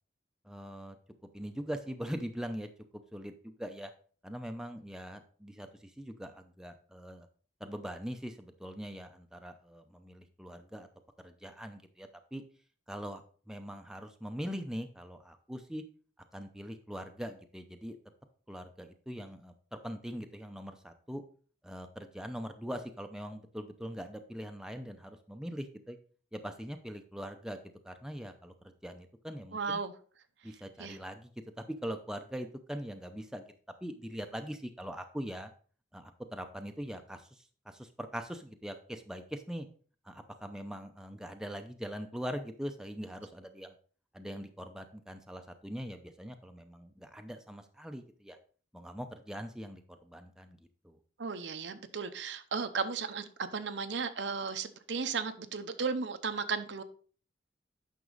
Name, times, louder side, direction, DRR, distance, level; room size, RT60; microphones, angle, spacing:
voice 1, 0.4-1.0 1.3-2.7 3.1-3.9 4.2-7.3 7.6-10.9 11.2-12.4 12.9-13.2 13.5-15.8 16.3-18.0 18.5-21.2 21.6-26.0 26.3-27.6 27.8-28.5 28.8-29.8 30.4-33.4 33.8-35.5 35.9-39.7 40.0-43.7 44.1-48.4 48.7-50.6 50.8-51.0, equal, 5° right, 6 dB, 0.6 m, -42 dB
voice 2, 29.5-29.9 30.8-31.0 51.2-56.8, right 5 dB, 75° right, 9 dB, 0.8 m, -35 dB
9.4 x 6.1 x 3.9 m, 0.42 s
head